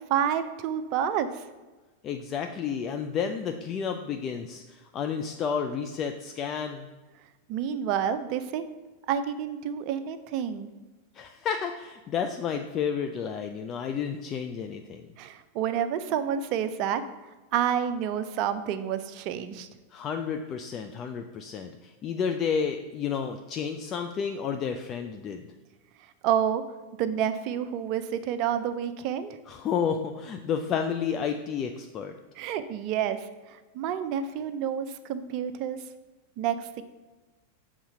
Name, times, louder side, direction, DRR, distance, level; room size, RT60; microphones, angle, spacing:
voice 1, 0.1-1.4 7.5-8.6 9.1-10.7 15.2-17.0 17.5-19.7 26.2-26.6 27.0-29.4 32.4-35.8 36.4-36.8, right 9 dB, 40° right, 11 dB, 0.5 m, -29 dB
voice 2, 2.0-6.9 11.1-15.1 19.9-25.5 29.5-32.1, left 7 dB, 30° left, 5 dB, 0.4 m, -31 dB
7.0 x 3.6 x 5.4 m, 1.2 s
figure-of-eight pair, 90°, 0 cm